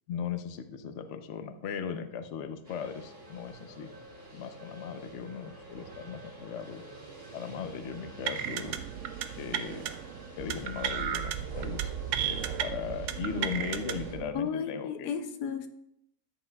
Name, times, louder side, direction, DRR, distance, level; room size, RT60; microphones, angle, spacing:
voice 1, 0.1-4.0 4.3-6.8 7.3-8.8 9.4-9.9 10.4-11.9 12.2-15.1, left 7 dB, 55° left, 8 dB, 0.9 m, -38 dB
sound 1, 2.6-14.2, left 1 dB, 30° right, 3.9 m, -50 dB
sound 2, 3.3-14.3, right 9 dB, 70° right, 0.8 m, -42 dB
sound 3, 8.3-8.8 9.0-9.3 9.5-9.9 10.5-11.4 11.6-11.8 12.1-12.6 13.1-13.9, right 10 dB, 85° right, 1.2 m, -32 dB
voice 2, 14.3-15.7, left 7 dB, 85° left, 8 dB, 1.4 m, -33 dB
13.5 x 10.0 x 2.3 m, 0.76 s
omnidirectional pair, 1.7 m